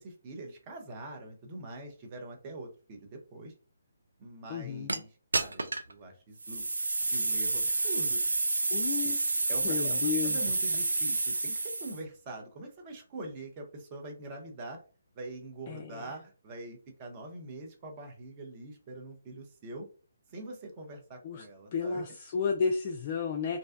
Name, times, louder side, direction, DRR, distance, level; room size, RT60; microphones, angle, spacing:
voice 1, 0.0-3.5 4.2-6.6 7.0-8.2 8.8-9.2 9.5-14.8 15.2-19.9 20.3-22.0, right 2 dB, 30° right, 3 dB, 0.6 m, -44 dB
voice 2, 4.5-4.9 7.8-7.9 8.7-9.2 9.6-10.4 11.0-11.1 15.7-16.1 21.2-21.4 21.7-23.6, left 5 dB, 35° left, 2 dB, 0.3 m, -32 dB
sound 1, 4.9-5.0 5.3-5.9 6.4-12.0, right 3 dB, 75° right, 0.3 m, -29 dB
2.6 x 2.1 x 2.4 m, 0.38 s
figure-of-eight pair, 140°, 0 cm